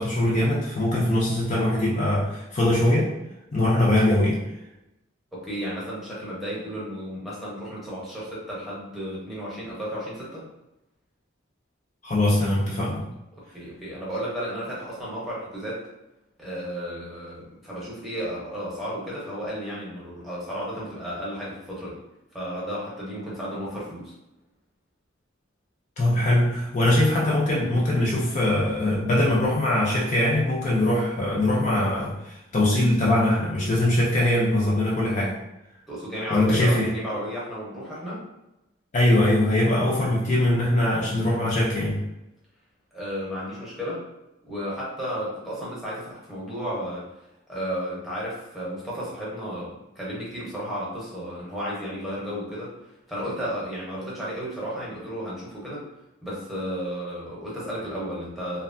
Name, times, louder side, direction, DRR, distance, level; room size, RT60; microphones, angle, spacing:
voice 1, 0.0-3.1 3.5-4.4 12.0-13.1 26.0-35.4 36.3-36.9 38.9-42.0, left 1 dB, 40° left, -5 dB, 0.5 m, -22 dB
voice 2, 5.3-10.5 13.4-15.8 16.4-22.0 22.3-24.1 35.9-38.2 42.9-44.0 44.5-47.1 47.5-55.9 56.2-58.6, equal, ahead, -7 dB, 0.8 m, -33 dB
2.7 x 2.2 x 2.6 m, 0.91 s
head